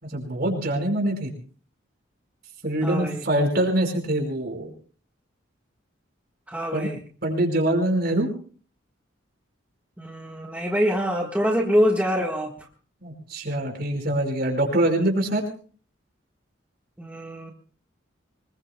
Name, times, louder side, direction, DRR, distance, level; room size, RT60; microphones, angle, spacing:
voice 1, 0.0-1.3 2.6-4.7 6.7-6.9 7.2-8.3 13.0-15.4, right 1 dB, 55° right, 3 dB, 4.9 m, -24 dB
voice 2, 2.8-3.2 6.5-7.0 10.0-12.6 17.0-17.5, equal, 10° right, 0 dB, 1.4 m, -25 dB
25.0 x 21.5 x 2.2 m, 0.41 s
head